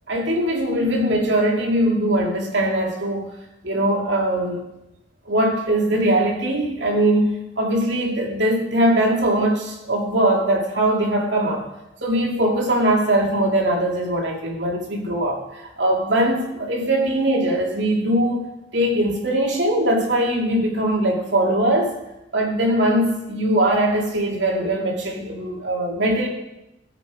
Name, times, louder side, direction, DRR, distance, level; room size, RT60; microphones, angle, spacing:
voice 1, 0.1-3.3 3.6-4.6 5.3-11.6 12.0-18.5 18.7-22.0 22.3-26.3, right 1 dB, 70° right, 0 dB, 2.3 m, -21 dB
15.0 x 6.1 x 4.8 m, 0.91 s
head